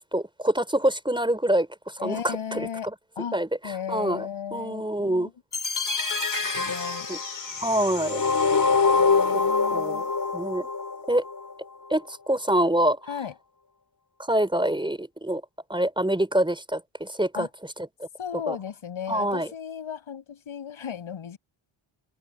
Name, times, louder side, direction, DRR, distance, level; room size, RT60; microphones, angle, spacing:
voice 1, 0.1-1.7 2.0-2.9 3.3-3.5 3.9-5.3 7.1-7.2 7.6-8.2 9.7-10.7 11.1-11.2 11.9-13.0 14.2-15.4 15.7-17.5 18.5-18.6 19.1-19.5, right 1 dB, 10° right, 5.2 m, -25 dB
voice 2, 2.0-2.9 3.2-3.4 3.6-5.3 6.6-7.1 8.8-10.1 13.1-13.3 17.3-17.5 18.2-21.4, left 8 dB, 75° left, 7.7 m, -35 dB
sound 1, 5.5-11.5, left 4 dB, 40° left, 5.8 m, -25 dB
open air
cardioid pair, 90°, 49 cm